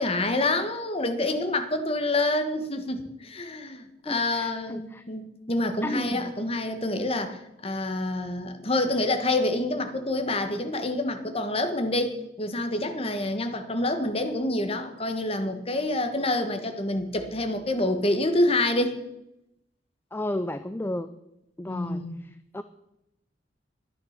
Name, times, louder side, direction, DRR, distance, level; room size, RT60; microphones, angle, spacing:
voice 1, 0.0-19.0 21.7-22.2, left 2 dB, 35° left, 7 dB, 1.4 m, -27 dB
voice 2, 4.1-5.0 5.8-6.3 20.1-21.1 21.6-22.6, left 1 dB, 10° left, 11 dB, 0.4 m, -33 dB
12.0 x 10.0 x 6.6 m, 0.86 s
head